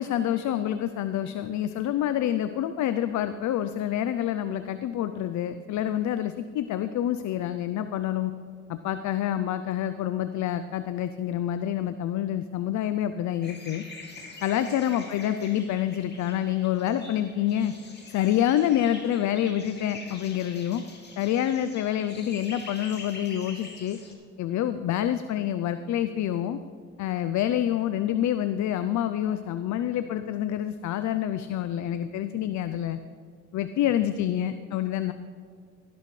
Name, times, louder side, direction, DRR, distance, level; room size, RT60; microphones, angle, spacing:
voice 1, 0.0-8.3 8.7-13.8 14.4-17.7 18.1-20.8 21.2-24.0 24.4-26.6 27.0-33.0 33.5-35.1, left 11 dB, 70° left, 11 dB, 0.5 m, -27 dB
sound 1, 13.4-24.1, left 3 dB, 35° left, 2.4 m, -45 dB
16.5 x 11.0 x 3.2 m, 2.1 s
cardioid pair, 90°, 30 cm